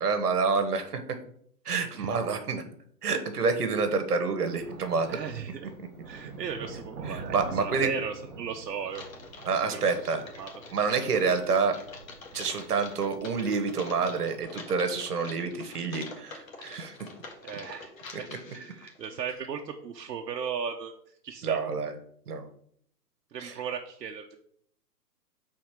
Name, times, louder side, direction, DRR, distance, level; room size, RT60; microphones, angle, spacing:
voice 1, 0.0-1.0 1.6-2.6 3.0-5.2 7.1-7.9 9.4-10.2 10.7-11.8 12.3-17.1 21.4-21.9 22.3-22.5 23.4-23.5, right 5 dB, 70° right, 8 dB, 1.3 m, -28 dB
Thunder, 4.4-14.4, right 3 dB, 45° right, 1.8 m, -45 dB
voice 2, 5.1-5.7 6.1-9.0 9.7-10.1 10.3-10.5 17.4-17.9 18.2-18.3 18.5-20.9 21.2-21.6 23.3-24.4, right 7 dB, 85° right, 3 dB, 0.9 m, -36 dB
Typing, 8.9-19.4, left 3 dB, 55° left, 1.5 m, -46 dB
4.8 x 4.2 x 5.8 m, 0.64 s
hypercardioid pair, 180°, 48 cm